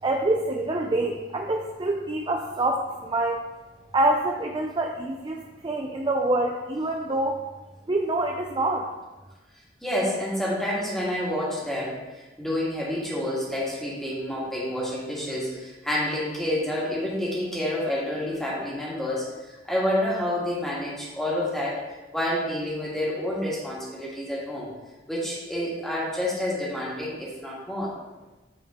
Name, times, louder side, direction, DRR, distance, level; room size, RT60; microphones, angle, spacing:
voice 1, 0.0-3.4 3.9-7.4 7.9-8.9, right 2 dB, 25° right, 1 dB, 0.5 m, -26 dB
voice 2, 9.8-19.2 19.7-21.8 22.1-24.7 25.1-27.9, left 1 dB, ahead, -6 dB, 1.7 m, -28 dB
8.6 x 3.7 x 3.6 m, 1.1 s
head